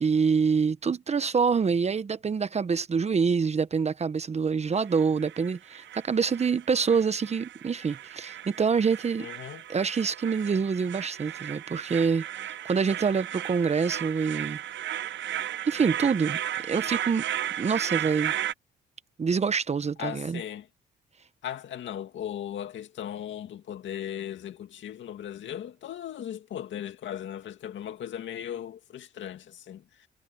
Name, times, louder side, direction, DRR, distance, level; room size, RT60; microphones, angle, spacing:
voice 1, 0.0-9.3 9.7-14.6 15.7-16.4 16.7-17.2 17.6-18.3 19.2-20.4, right 5 dB, 35° right, 0.9 m, -26 dB
sound 1, 4.7-18.5, right 11 dB, 65° right, 0.7 m, -35 dB
voice 2, 9.2-9.6 20.0-20.7 21.4-30.1, left 10 dB, 70° left, 2.2 m, -37 dB
cardioid pair, 90°, 20 cm